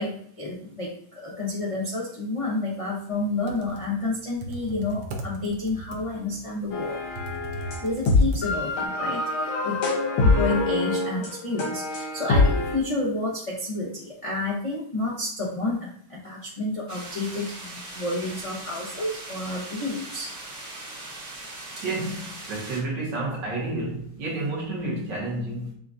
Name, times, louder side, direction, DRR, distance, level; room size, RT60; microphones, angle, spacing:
voice 1, 0.0-7.0 7.8-9.8 10.2-20.3, left 2 dB, 55° left, 0.3 m, -30 dB
Computer keyboard, 3.3-8.9, right 1 dB, 80° right, 0.7 m, -39 dB
sound 1, 6.7-12.8, left 3 dB, 90° left, 1.8 m, -24 dB
sound 2, 16.9-22.8, right 2 dB, 45° right, 1.1 m, -40 dB
voice 2, 21.8-25.7, right 2 dB, 65° right, 1.9 m, -30 dB
6.5 x 2.4 x 2.6 m
omnidirectional pair, 2.1 m